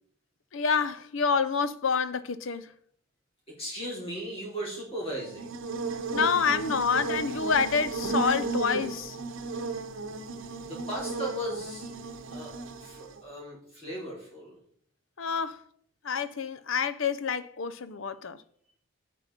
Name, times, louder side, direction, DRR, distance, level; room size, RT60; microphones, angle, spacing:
voice 1, 0.5-2.7 6.1-9.2 15.2-15.6 16.0-18.4, left 5 dB, 75° left, 0.7 m, -28 dB
voice 2, 3.5-5.5 10.6-11.9 12.3-14.6, equal, 30° left, 5.1 m, -37 dB
Buzz, 5.1-13.2, right 3 dB, 75° right, 1.0 m, -34 dB
9.1 x 7.6 x 5.3 m
head